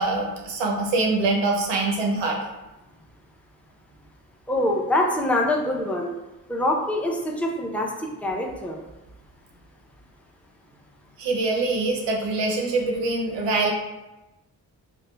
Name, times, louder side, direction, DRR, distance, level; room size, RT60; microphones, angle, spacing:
voice 1, 0.0-2.4 11.2-13.7, right 3 dB, 90° right, 0 dB, 0.6 m, -24 dB
voice 2, 4.5-6.1 6.5-8.8, left 1 dB, 5° left, 0 dB, 0.4 m, -24 dB
3.1 x 2.1 x 2.2 m, 1.0 s
supercardioid pair, 45°, 42 cm